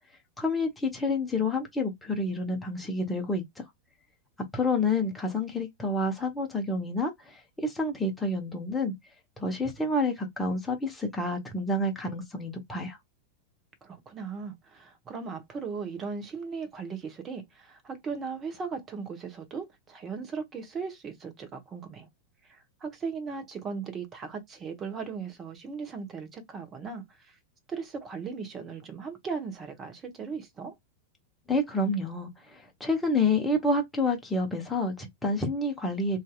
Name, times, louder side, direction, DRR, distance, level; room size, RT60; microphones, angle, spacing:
voice 1, 0.4-3.6 4.5-8.9 9.4-13.0 31.5-36.2, left 2 dB, 10° left, 0.9 m, -29 dB
voice 2, 13.8-22.1 22.4-27.4 27.7-30.7, right 5 dB, 25° right, 0.9 m, -38 dB
2.7 x 2.4 x 2.3 m
figure-of-eight pair, 90°, 0 cm